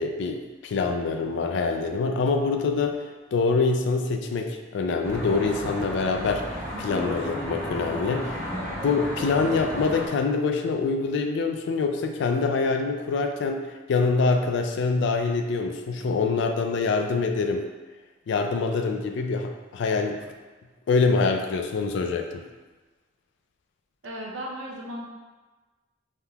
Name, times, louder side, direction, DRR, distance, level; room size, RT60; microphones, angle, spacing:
voice 1, 0.0-3.0 3.3-6.4 6.8-8.4 8.8-17.6 18.3-20.2 20.9-22.4, left 4 dB, 65° left, 5 dB, 0.3 m, -25 dB
Traffic noise roadway noise, 5.0-10.1, equal, 10° left, 1.1 m, -33 dB
voice 2, 24.0-25.1, equal, 80° right, -2 dB, 0.6 m, -35 dB
3.4 x 2.8 x 2.3 m, 1.3 s
head